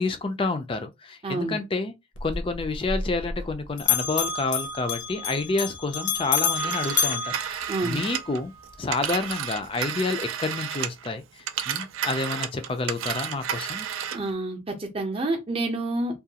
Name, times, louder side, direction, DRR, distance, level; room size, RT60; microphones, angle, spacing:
voice 1, 0.0-1.9 2.2-8.5 8.8-11.2 11.7-13.9, left 3 dB, 25° left, 0.3 m, -29 dB
voice 2, 1.2-1.6 7.7-8.0 14.1-16.2, right 2 dB, 30° right, 0.6 m, -28 dB
Bell, 2.1-3.5 3.8-8.3, left 6 dB, 70° left, 0.6 m, -28 dB
Telephone, 6.4-11.1 11.4-14.3, right 9 dB, 80° right, 0.3 m, -32 dB
2.4 x 2.3 x 2.7 m
head